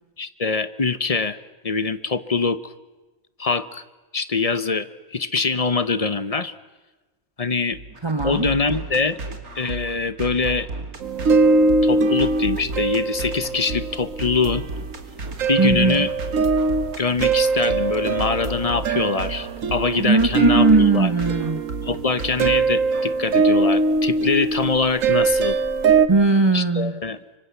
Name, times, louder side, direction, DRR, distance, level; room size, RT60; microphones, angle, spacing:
voice 1, 0.2-1.4 1.6-2.7 3.4-3.8 4.1-6.5 7.4-7.8 8.2-9.2 9.6-10.7 11.8-14.6 15.5-16.1 17.0-21.1 21.8-25.6 26.5-27.2, left 4 dB, 30° left, 15 dB, 0.8 m, -23 dB
sound 1, 7.7-23.1, right 2 dB, 90° right, 2.8 m, -34 dB
voice 2, 8.0-8.5 15.6-16.1 20.0-21.7 26.1-26.9, right 3 dB, 20° right, 10 dB, 1.0 m, -19 dB
sound 2, 11.0-15.0 15.4-26.1, right 4 dB, 65° right, 1.4 m, -22 dB
25.0 x 24.0 x 8.3 m, 1.2 s
omnidirectional pair, 1.5 m